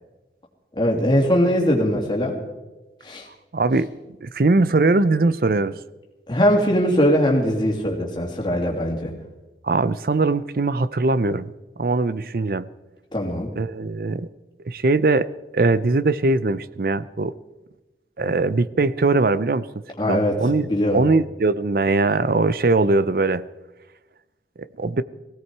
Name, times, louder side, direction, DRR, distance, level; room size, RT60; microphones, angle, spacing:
voice 1, 0.8-2.4 3.0-3.3 6.3-9.1 13.1-13.5 20.0-20.4 20.7-21.0, equal, 25° left, 0 dB, 2.7 m, -20 dB
voice 2, 3.5-3.9 4.2-5.8 9.6-11.5 11.8-12.7 13.6-14.3 14.7-17.3 18.2-19.7 20.1-23.5 24.6-25.0, right 3 dB, 55° right, 16 dB, 0.5 m, -21 dB
18.5 x 16.5 x 4.7 m, 1.1 s
head